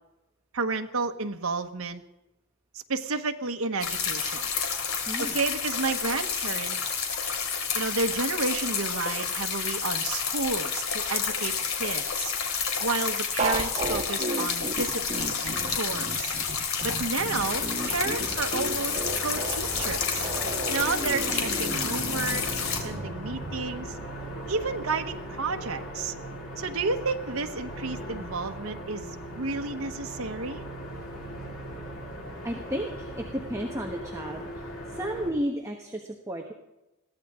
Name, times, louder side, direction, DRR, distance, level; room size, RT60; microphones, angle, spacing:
voice 1, 0.5-2.0 2.9-4.5 5.2-7.0 7.7-12.3 12.8-16.3 16.8-20.3 20.7-22.4 22.8-24.0 24.5-26.1 26.6-29.1 29.4-30.6, right 4 dB, 75° right, 5 dB, 1.2 m, -31 dB
sound 1, 3.8-22.8, left 6 dB, 70° left, 2.9 m, -30 dB
voice 2, 5.1-5.4 32.4-36.5, equal, 15° right, 1 dB, 1.3 m, -33 dB
sound 2, 13.4-23.6, right 2 dB, 35° right, 1.5 m, -34 dB
sound 3, 17.4-35.3, equal, 85° left, 4.1 m, -39 dB
21.5 x 16.0 x 3.7 m, 0.99 s
head